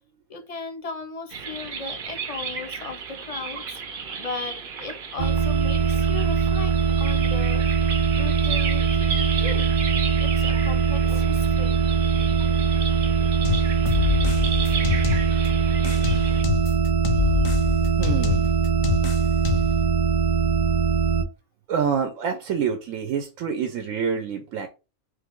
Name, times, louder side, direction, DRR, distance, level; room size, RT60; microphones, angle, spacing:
voice 1, 0.3-3.8 4.2-7.9 8.1-9.7 10.2-11.8 17.1-17.5, left 4 dB, 40° left, 0.6 m, -37 dB
sound 1, 1.3-16.4, right 6 dB, 50° right, 0.8 m, -34 dB
sound 2, 5.2-21.2, right 6 dB, 70° right, 0.4 m, -22 dB
sound 3, 13.4-15.5 15.8-19.8, left 11 dB, 90° left, 1.0 m, -27 dB
voice 2, 18.0-18.5 21.7-24.7, right 7 dB, 90° right, 1.0 m, -27 dB
3.5 x 3.4 x 3.6 m
omnidirectional pair, 1.3 m